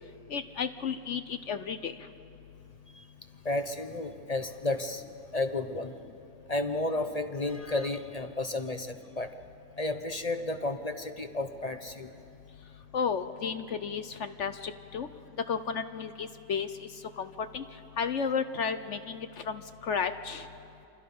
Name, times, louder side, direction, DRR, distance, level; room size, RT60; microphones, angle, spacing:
voice 1, 0.3-2.1 12.9-15.1 15.5-20.5, left 6 dB, 55° left, 10 dB, 1.0 m, -33 dB
voice 2, 3.4-5.0 5.3-5.9 6.5-9.3 9.8-12.1, left 2 dB, 30° left, 7 dB, 0.8 m, -32 dB
29.5 x 26.5 x 5.5 m, 2.7 s
omnidirectional pair, 1.6 m